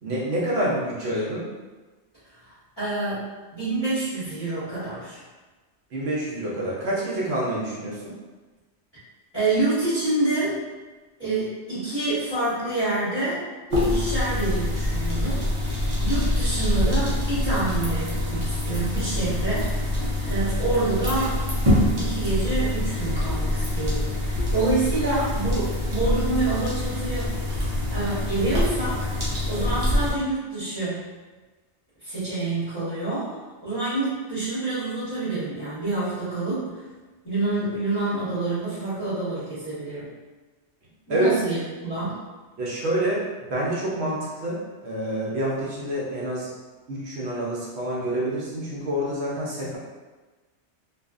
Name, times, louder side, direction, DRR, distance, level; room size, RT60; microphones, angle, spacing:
voice 1, 0.0-1.4 5.9-8.1 41.1-41.3 42.6-43.2 43.5-46.5 46.9-49.8, right 1 dB, 65° right, -5 dB, 0.9 m, -27 dB
voice 2, 2.2-5.2 9.3-10.6 11.2-13.4 13.8-15.4 16.0-19.9 20.2-21.4 22.0-27.7 27.9-29.1 29.4-31.1 32.0-36.8 37.2-40.1 41.1-42.2, right 2 dB, 20° left, -17 dB, 1.3 m, -27 dB
sound 1, 13.7-30.1, left 1 dB, 45° right, 0.7 m, -25 dB
2.6 x 2.4 x 2.4 m, 1.3 s
omnidirectional pair, 1.2 m